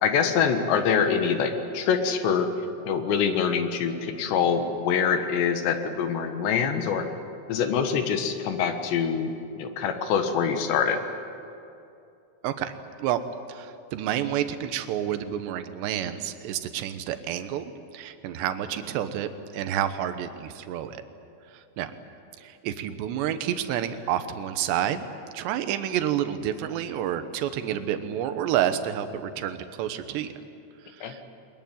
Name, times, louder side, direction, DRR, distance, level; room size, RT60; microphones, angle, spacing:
voice 1, 0.0-2.5 2.9-7.1 7.5-9.3 9.6-11.0 31.0-31.1, left 7 dB, 75° left, 7 dB, 3.7 m, -25 dB
voice 2, 12.4-12.7 13.0-13.2 13.5-21.0 21.5-21.9 22.4-25.1 25.3-30.3 31.0-31.3, right 10 dB, 75° right, 10 dB, 3.2 m, -29 dB
22.5 x 21.5 x 9.3 m, 2.6 s
omnidirectional pair, 5.2 m